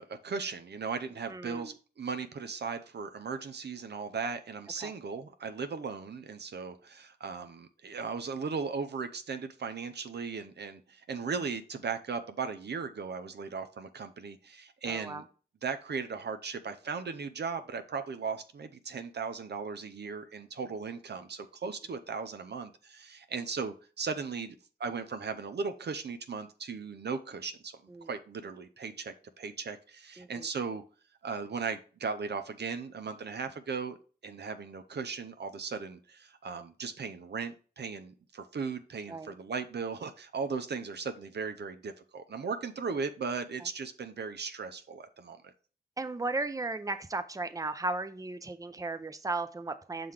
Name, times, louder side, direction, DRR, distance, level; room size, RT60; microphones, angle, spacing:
voice 1, 0.0-15.2 15.6-27.7 28.1-30.8 31.2-34.0 34.2-45.5, right 5 dB, 75° right, 9 dB, 0.6 m, -37 dB
voice 2, 1.3-1.8 4.8-4.9 14.9-15.2 27.9-28.1 30.2-30.5 39.1-39.3 46.0-50.1, right 2 dB, 20° right, 10 dB, 0.6 m, -36 dB
5.8 x 3.8 x 4.8 m, 0.38 s
cardioid pair, 45°, 17 cm